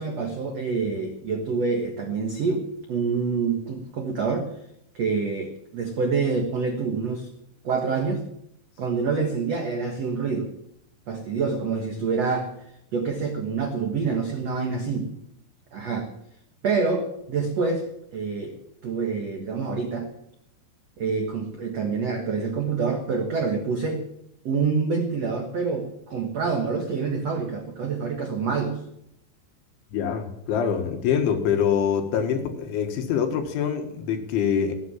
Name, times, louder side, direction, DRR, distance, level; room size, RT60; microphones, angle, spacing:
voice 1, 0.0-4.5 4.9-7.3 7.6-8.2 8.8-10.5 11.1-12.5 12.9-15.1 15.7-16.1 16.6-18.5 18.8-20.1 21.0-24.0 24.4-28.8, right 4 dB, 70° right, 3 dB, 1.5 m, -26 dB
voice 2, 29.9-34.7, left 7 dB, 75° left, 5 dB, 4.0 m, -25 dB
19.0 x 9.6 x 7.3 m, 0.78 s
omnidirectional pair, 5.5 m